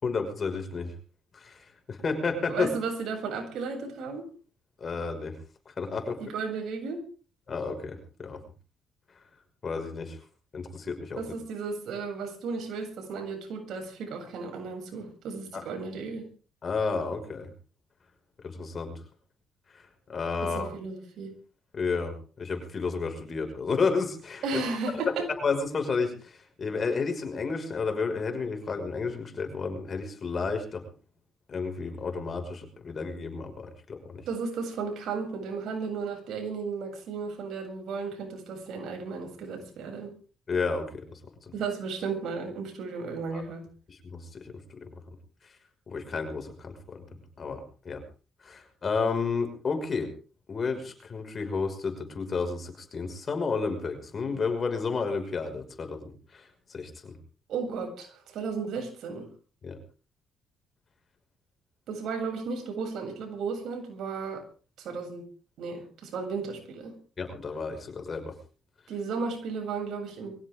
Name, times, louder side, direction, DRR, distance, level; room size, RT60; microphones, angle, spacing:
voice 1, 0.0-0.9 1.3-2.7 4.8-5.4 5.7-6.2 7.5-8.4 9.6-10.2 10.5-11.2 15.5-15.6 16.6-17.5 18.4-19.0 19.7-19.8 20.1-20.7 21.7-24.6 25.4-30.8 31.5-34.2 40.5-41.2 43.3-43.4 43.9-45.0 45.9-47.0 47.4-48.0 48.4-50.1 50.5-57.2 59.6-59.8 67.2-68.4, left 4 dB, 40° left, 6 dB, 5.8 m, -31 dB
voice 2, 2.5-4.3 6.2-7.0 11.2-16.3 20.4-21.3 24.4-25.3 34.3-40.1 41.5-43.7 57.5-59.3 61.9-64.4 64.8-65.3 65.6-67.0 68.9-70.4, right 4 dB, 75° right, 3 dB, 7.8 m, -34 dB
23.5 x 16.0 x 3.8 m, 0.39 s
cardioid pair, 90°, 0 cm